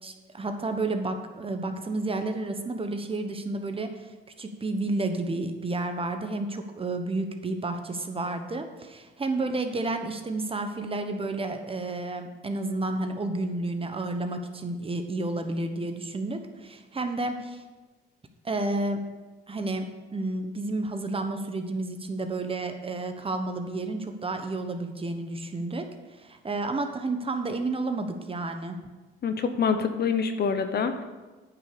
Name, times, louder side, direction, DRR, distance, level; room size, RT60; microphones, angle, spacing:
voice 1, 0.0-4.1 4.4-17.6 18.4-19.1 19.5-25.9 26.2-28.8, right 2 dB, 30° right, 6 dB, 1.1 m, -31 dB
voice 2, 29.2-31.0, left 6 dB, 55° left, 8 dB, 1.0 m, -26 dB
9.6 x 5.6 x 6.8 m, 1.2 s
cardioid pair, 90°, 20 cm